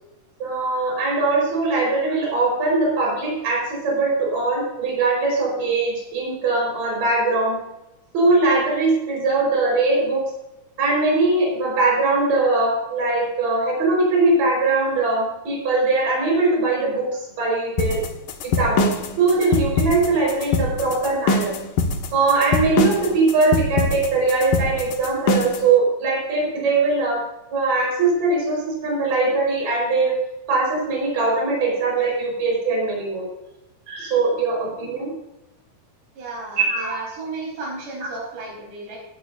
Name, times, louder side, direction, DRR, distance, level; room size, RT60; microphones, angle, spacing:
voice 1, 0.4-7.6 8.1-10.3 10.8-18.0 18.6-18.9 19.2-21.5 22.1-27.2 27.5-30.2 30.5-33.2 33.9-35.1 36.6-37.0, right 3 dB, 55° right, -2 dB, 6.4 m, -21 dB
sound 1, 17.8-25.7, left 3 dB, 65° left, 2.6 m, -22 dB
voice 2, 36.2-39.0, right 3 dB, 85° right, -3 dB, 6.4 m, -34 dB
19.5 x 10.0 x 2.7 m, 0.95 s
omnidirectional pair, 4.7 m